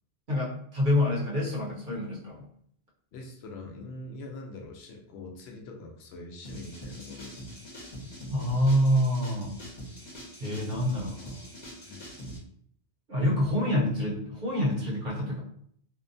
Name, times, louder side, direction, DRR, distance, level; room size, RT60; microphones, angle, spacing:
voice 1, 0.3-2.5 8.3-9.5 10.4-11.4 13.1-15.4, left 1 dB, 55° right, -4 dB, 0.9 m, -27 dB
voice 2, 3.1-7.6 11.8-12.1, left 2 dB, 80° left, 2 dB, 0.8 m, -43 dB
sound 1, 6.4-12.4, equal, 45° left, 1.0 m, -43 dB
2.7 x 2.2 x 2.5 m, 0.65 s
omnidirectional pair, 1.1 m